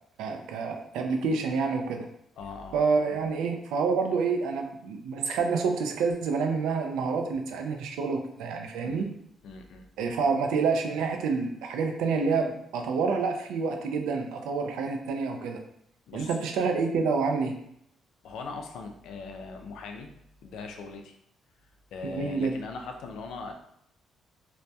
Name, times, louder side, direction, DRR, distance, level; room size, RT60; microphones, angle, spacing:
voice 1, 0.2-2.1 2.7-9.1 10.0-15.6 16.1-17.6 22.0-22.6, right 4 dB, 90° right, 4 dB, 0.3 m, -28 dB
voice 2, 2.4-2.8 8.8-9.0 9.4-9.9 16.1-16.3 18.2-20.1 20.4-21.1 21.9-23.5, left 4 dB, 80° left, 4 dB, 0.3 m, -40 dB
2.2 x 2.1 x 2.6 m, 0.73 s
cardioid pair, 90°, 0 cm